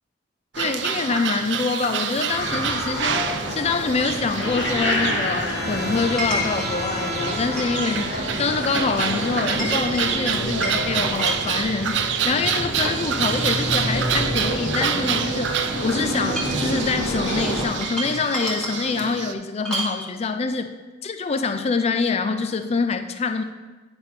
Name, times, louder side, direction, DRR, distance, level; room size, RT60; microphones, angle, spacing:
sound 1, 0.5-19.3, right 7 dB, 70° right, 0.5 m, -28 dB
voice 1, 0.6-15.5 15.8-20.7 21.0-23.4, left 4 dB, 35° left, 9 dB, 0.4 m, -25 dB
sound 2, 2.3-17.6, left 1 dB, 85° left, 1.6 m, -28 dB
Chink clink, 2.7-2.8 6.2-6.7 7.2-8.0 8.3-8.5 9.2-12.0 12.6-13.1 13.6-13.7 14.0-15.5 16.2-16.7 17.6-18.8 19.6-20.0, equal, 5° left, 1.6 m, -31 dB
9.6 x 4.2 x 5.4 m, 1.3 s
head